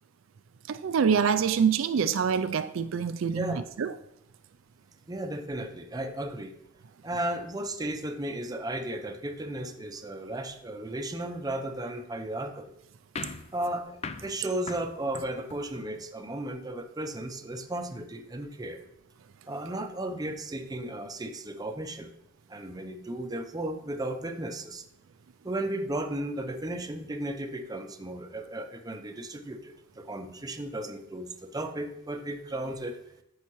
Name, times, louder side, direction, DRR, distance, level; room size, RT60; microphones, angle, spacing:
voice 1, 0.7-3.9, right 6 dB, 75° right, 10 dB, 0.4 m, -26 dB
voice 2, 3.3-3.6 5.1-6.5 7.0-12.7 13.5-18.8 19.5-22.1 22.5-24.8 25.4-33.0, right 1 dB, 20° right, 6 dB, 0.7 m, -35 dB
sound 1, 13.2-16.0, left 4 dB, 30° left, 0.4 m, -41 dB
14.0 x 5.6 x 3.1 m, 0.80 s
head